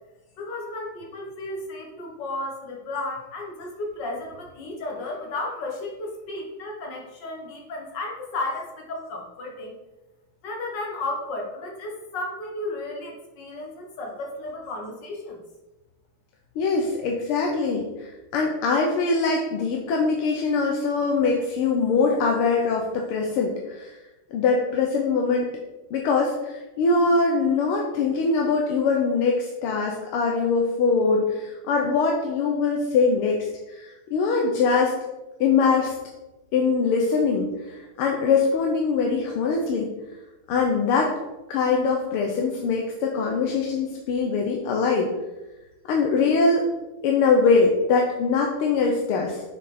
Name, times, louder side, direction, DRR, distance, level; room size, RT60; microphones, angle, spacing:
voice 1, 0.4-9.8 10.4-15.4, left 2 dB, 60° left, 1 dB, 1.9 m, -33 dB
voice 2, 16.6-24.0 24.3-25.5 25.9-33.4 33.7-34.9 35.4-35.9 36.5-39.9 40.5-41.1 41.5-45.1 45.9-46.7 47.0-49.4, left 4 dB, 90° left, 1 dB, 1.7 m, -22 dB
6.4 x 5.6 x 4.2 m, 1.0 s
omnidirectional pair, 2.4 m